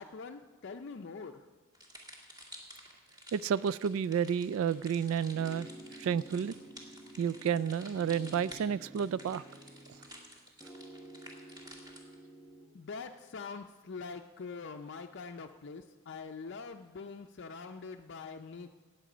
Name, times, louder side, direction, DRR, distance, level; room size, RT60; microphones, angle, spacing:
voice 1, 0.0-1.5 12.6-18.7, left 4 dB, 60° left, 5 dB, 0.5 m, -44 dB
sound 1, 1.7-12.1, equal, 20° right, 2.2 m, -52 dB
voice 2, 3.3-5.7 6.0-6.6 7.2-9.4, right 7 dB, 85° right, 19 dB, 0.3 m, -31 dB
sound 2, 5.3-7.7 8.0-10.3 10.6-12.7, right 1 dB, 5° left, 0.8 m, -51 dB
18.5 x 7.4 x 5.0 m, 1.5 s
head